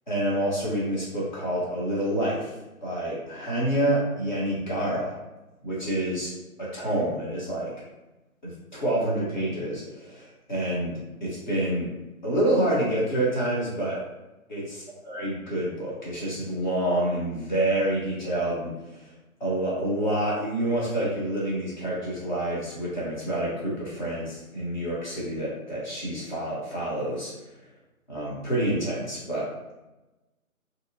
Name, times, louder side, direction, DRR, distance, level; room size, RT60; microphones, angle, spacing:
voice 1, 0.1-2.5 2.8-5.1 5.6-6.3 6.6-7.7 8.4-11.9 12.2-14.0 14.5-19.1 19.4-27.3 28.1-29.5, right 1 dB, 35° left, -7 dB, 0.9 m, -28 dB
2.7 x 2.2 x 2.6 m, 1.0 s
figure-of-eight pair, 160°, 43 cm